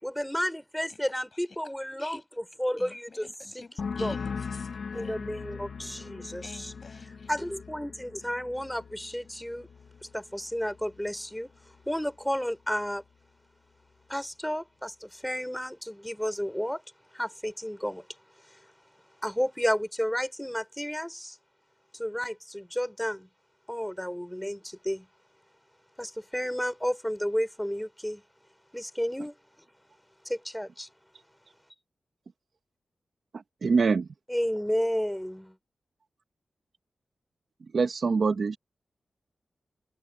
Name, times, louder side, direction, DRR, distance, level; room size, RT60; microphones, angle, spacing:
voice 1, 0.0-3.3 3.5-3.6 4.0-4.3 4.9-6.7 7.3-9.7 10.1-11.5 11.9-13.0 14.1-16.8 17.1-18.1 18.5-18.6 19.2-21.4 21.9-23.3 23.7-25.1 26.0-28.2 28.7-29.3 30.2-30.9 34.3-35.6, equal, 5° left, 6.2 m, -32 dB
voice 2, 0.9-1.4 2.0-2.2 2.8-5.2 6.4-7.3, left 4 dB, 40° left, 7.8 m, -50 dB
sound 1, 3.8-11.2 11.5-12.1, left 5 dB, 70° left, 1.7 m, -40 dB
voice 3, 33.3-34.1 37.7-38.6, right 4 dB, 55° right, 2.4 m, -25 dB
wide cardioid pair, 145°, 0 cm